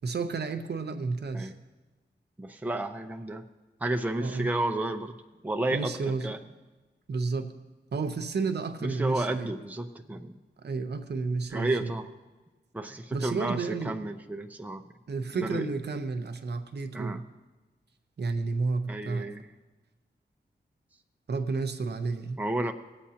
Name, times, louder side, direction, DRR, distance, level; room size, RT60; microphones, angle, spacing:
voice 1, 0.0-1.5 4.2-4.5 5.7-6.3 7.1-7.5 7.9-9.5 10.6-11.9 13.1-14.0 15.1-17.2 18.2-19.3 21.3-22.4, right 4 dB, 65° right, 7 dB, 0.8 m, -31 dB
voice 2, 2.4-3.4 3.8-5.1 5.4-5.9 6.2-6.4 8.8-10.3 11.5-12.1 12.7-14.8 15.3-15.7 16.9-17.2 18.9-19.5 22.4-22.7, right 2 dB, 10° right, 5 dB, 0.6 m, -31 dB
19.0 x 8.5 x 2.9 m, 1.2 s
wide cardioid pair, 85°, 19 cm